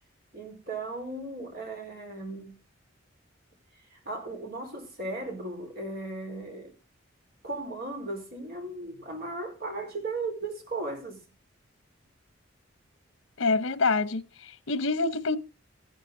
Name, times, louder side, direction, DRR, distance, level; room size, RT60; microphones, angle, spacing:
voice 1, 0.3-2.6 3.9-6.7 7.4-11.2, right 2 dB, 55° right, 4.5 m, -36 dB
voice 2, 13.4-15.4, left 3 dB, 90° left, 0.8 m, -26 dB
14.0 x 10.5 x 3.8 m
head